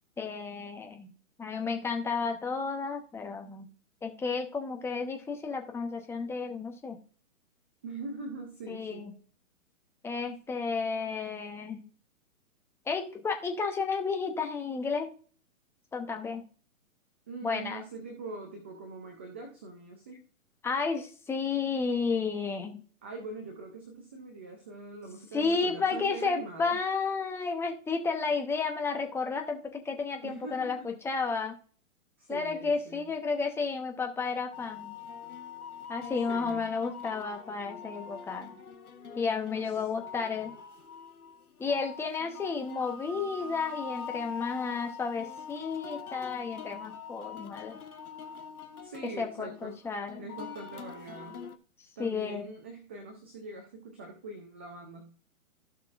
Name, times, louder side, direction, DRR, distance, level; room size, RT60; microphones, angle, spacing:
voice 1, 0.2-1.1 1.4-3.7 4.0-7.0 8.7-9.1 10.0-11.8 12.9-15.1 15.9-16.4 17.4-17.8 20.6-22.8 25.3-31.6 32.3-34.9 35.9-38.5 39.2-40.5 41.6-47.8 49.2-50.3 52.0-52.5, left 4 dB, 5° left, 3 dB, 0.8 m, -32 dB
voice 2, 7.8-9.1 17.3-20.2 23.0-26.8 30.2-30.9 32.2-33.1 36.3-36.7 39.6-39.9 48.8-49.8 50.1-51.4 52.0-55.1, right 3 dB, 10° right, 2 dB, 0.4 m, -43 dB
sound 1, 34.5-51.6, left 6 dB, 90° left, 1.4 m, -44 dB
15.5 x 6.0 x 2.5 m, 0.42 s
hypercardioid pair, 135°, 43 cm